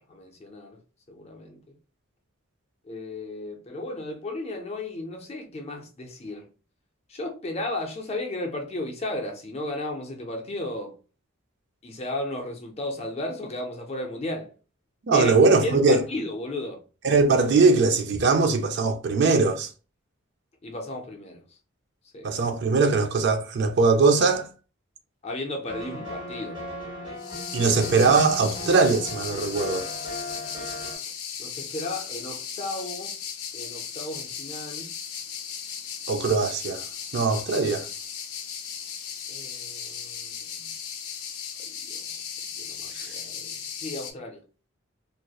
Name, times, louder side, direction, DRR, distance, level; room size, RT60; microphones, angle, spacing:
voice 1, 0.1-0.8 1.1-1.8 2.8-6.5 7.1-11.0 11.8-14.5 15.1-15.3 15.6-16.9 20.6-21.4 22.1-22.3 25.2-26.6 27.0-27.3 31.4-33.2 33.5-34.9 39.3-40.7 41.6-42.1 42.6-44.4, left 1 dB, 30° left, 0.4 m, -34 dB
voice 2, 15.1-16.0 17.0-19.7 22.2-24.5 27.5-29.9 36.1-36.8 37.1-37.9 42.9-43.1, right 4 dB, 55° right, 0.4 m, -21 dB
sound 1, 25.7-31.0, left 1 dB, 25° right, 1.0 m, -37 dB
sound 2, 27.2-44.1, left 7 dB, 85° left, 0.5 m, -36 dB
2.7 x 2.0 x 2.3 m
head